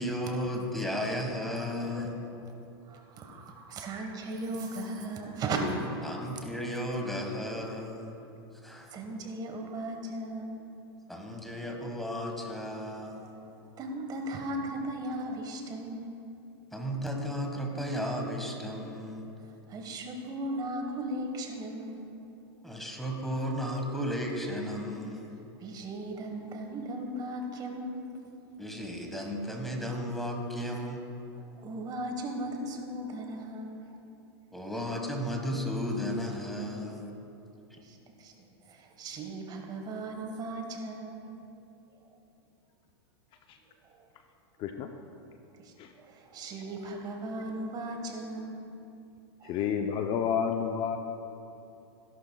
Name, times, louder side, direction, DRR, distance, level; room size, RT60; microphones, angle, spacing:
voice 1, 0.0-2.2 6.0-8.1 8.6-8.9 11.1-13.3 16.7-19.3 22.6-25.4 28.6-31.0 34.5-37.2, equal, ahead, 1 dB, 1.5 m, -34 dB
voice 2, 2.9-6.4 8.9-10.7 13.2-13.4 13.8-16.2 19.7-22.2 25.6-28.1 31.4-33.9 37.8-38.3 38.7-41.3 45.6-48.7 49.4-49.6, right 1 dB, 30° right, 3 dB, 1.3 m, -37 dB
voice 3, 49.4-51.0, left 7 dB, 35° left, 5 dB, 0.6 m, -29 dB
16.5 x 11.5 x 2.3 m, 2.8 s
hypercardioid pair, 125°, 14 cm